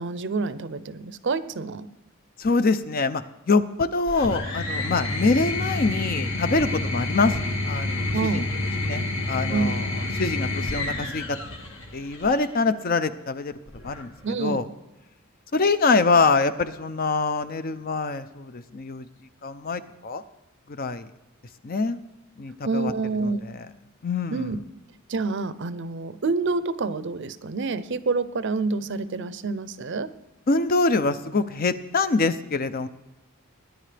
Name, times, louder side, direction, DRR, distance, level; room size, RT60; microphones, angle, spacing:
voice 1, 0.0-1.9 8.1-8.5 9.5-9.8 14.2-14.7 22.6-23.4 24.3-24.6 25.1-30.1, right 3 dB, 55° right, 14 dB, 0.6 m, -27 dB
voice 2, 2.4-7.3 7.6-8.5 8.8-11.4 11.9-13.5 13.8-14.1 14.4-14.7 15.5-19.1 19.4-20.2 20.7-21.1 21.6-22.0 22.4-22.9 23.2-23.6 24.0-24.6 30.5-32.9, left 3 dB, 40° left, 12 dB, 0.5 m, -24 dB
sound 1, 4.1-12.5 13.7-14.3, left 2 dB, 65° left, 1.8 m, -29 dB
20.5 x 10.5 x 3.4 m, 0.96 s
head